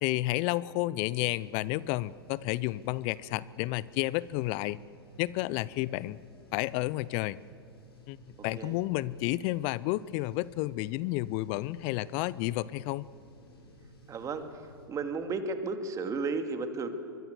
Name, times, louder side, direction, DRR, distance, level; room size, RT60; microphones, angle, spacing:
voice 1, 0.0-4.8 5.2-6.2 6.5-7.4 8.1-8.2 8.4-13.1, left 18 dB, 45° left, 21 dB, 0.6 m, -31 dB
sound 1, 1.2-14.9, left 1 dB, 80° left, 6.0 m, -55 dB
voice 2, 14.1-14.5 14.9-16.9, right 4 dB, 25° right, 8 dB, 2.6 m, -33 dB
24.0 x 22.0 x 8.2 m, 2.4 s
hypercardioid pair, 100°, 13 cm